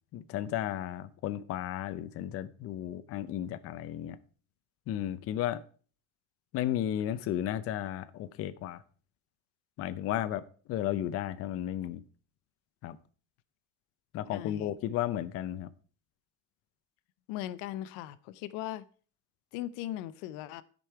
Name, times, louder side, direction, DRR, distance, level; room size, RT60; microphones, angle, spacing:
voice 1, 0.1-4.2 4.9-5.6 6.5-8.8 9.8-10.4 10.7-12.0 12.8-13.0 14.1-15.7, left 11 dB, 40° left, 0.6 m, -34 dB
voice 2, 14.3-14.7 17.3-18.8 19.5-20.6, left 13 dB, 80° left, 0.7 m, -38 dB
13.0 x 5.4 x 4.6 m
cardioid pair, 160°, 35 cm